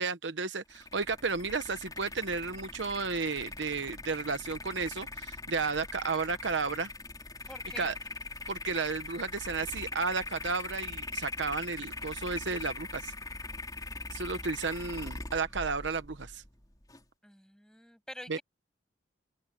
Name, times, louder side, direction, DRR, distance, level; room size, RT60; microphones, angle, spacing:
voice 1, 0.0-6.9 7.8-7.9 8.5-13.1 14.1-16.4 18.3-18.4, right 4 dB, 70° right, 1.0 m, -33 dB
sound 1, 0.7-17.0, left 3 dB, 20° left, 4.0 m, -41 dB
voice 2, 7.5-7.9 14.4-14.5 17.2-18.4, left 1 dB, 5° left, 7.4 m, -47 dB
open air
head